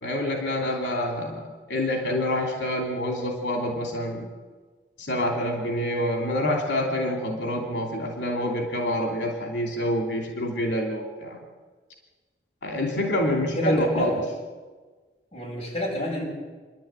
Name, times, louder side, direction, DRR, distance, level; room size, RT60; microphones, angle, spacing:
voice 1, 0.0-4.3 5.0-11.4 12.6-14.2, left 1 dB, 85° left, 1 dB, 2.9 m, -27 dB
voice 2, 13.2-14.2 15.3-16.2, left 1 dB, 30° left, -3 dB, 8.0 m, -29 dB
28.0 x 11.5 x 8.9 m, 1.4 s
head